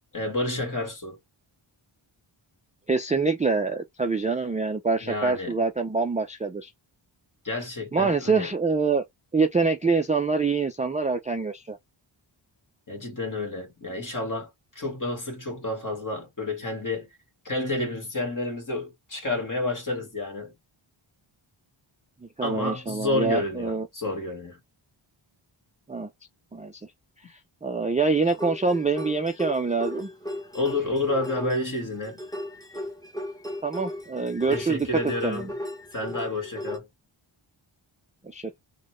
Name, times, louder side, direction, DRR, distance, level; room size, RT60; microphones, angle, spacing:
voice 1, 0.1-1.2 5.0-5.6 7.4-8.5 12.9-14.5 14.7-17.1 17.4-20.5 22.4-24.6 30.5-32.2 34.5-35.5 35.9-36.9, left 2 dB, 40° left, 1.6 m, -30 dB
voice 2, 2.9-6.7 7.9-9.0 9.3-11.8 22.2-23.9 25.9-26.1 26.5-26.8 27.6-30.1 33.6-35.5 38.3-38.6, right 4 dB, 15° right, 0.3 m, -25 dB
sound 1, 28.2-36.8, left 1 dB, 10° left, 0.8 m, -37 dB
4.0 x 2.2 x 3.0 m
wide cardioid pair, 85°, 50 cm